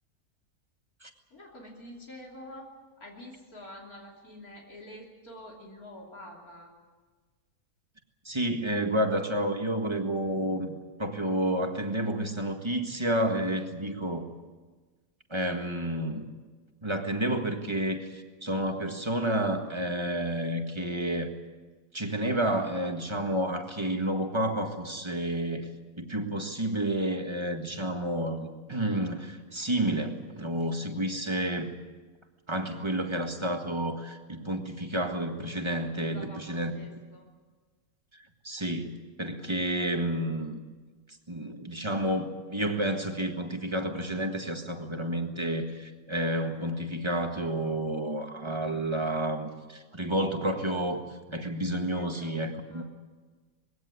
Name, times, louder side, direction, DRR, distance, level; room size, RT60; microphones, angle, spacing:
voice 1, 1.3-6.7 36.1-37.3 51.9-52.4 52.7-52.8, left 1 dB, 75° left, -1 dB, 3.5 m, -47 dB
voice 2, 8.3-10.7 11.0-14.3 15.3-16.3 16.8-21.3 21.9-25.7 26.0-31.8 32.5-36.7 38.1-40.6 41.3-51.0 51.3-52.8, right 1 dB, 20° right, 4 dB, 1.7 m, -30 dB
21.5 x 16.5 x 9.6 m, 1.4 s
omnidirectional pair, 1.6 m